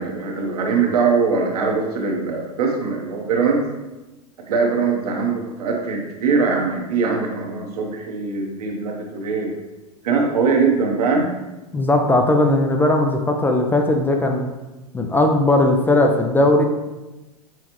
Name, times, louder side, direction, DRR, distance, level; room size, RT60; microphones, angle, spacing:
voice 1, 0.0-3.6 4.5-9.5 10.0-11.3, right 4 dB, 75° right, 0 dB, 0.9 m, -21 dB
voice 2, 11.7-14.5 14.9-16.6, left 1 dB, 10° left, 3 dB, 0.4 m, -18 dB
5.9 x 2.4 x 3.0 m, 1.1 s
hypercardioid pair, 105°, 20 cm